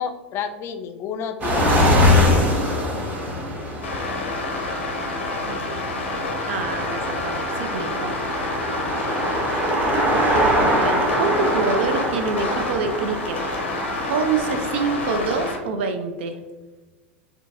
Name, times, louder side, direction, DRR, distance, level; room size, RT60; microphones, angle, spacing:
voice 1, 0.0-2.1 9.0-10.1, left 7 dB, 40° left, 8 dB, 0.4 m, -32 dB
sound 1, 1.4-15.3, equal, 25° right, 0.8 m, -23 dB
sound 2, 3.8-15.6, left 2 dB, 85° left, 0.6 m, -29 dB
voice 2, 6.4-8.1 9.4-10.0 10.8-13.4 14.1-16.4, right 4 dB, 70° right, 7 dB, 0.5 m, -26 dB
3.8 x 2.3 x 2.6 m, 1.2 s
hypercardioid pair, 90°, 6 cm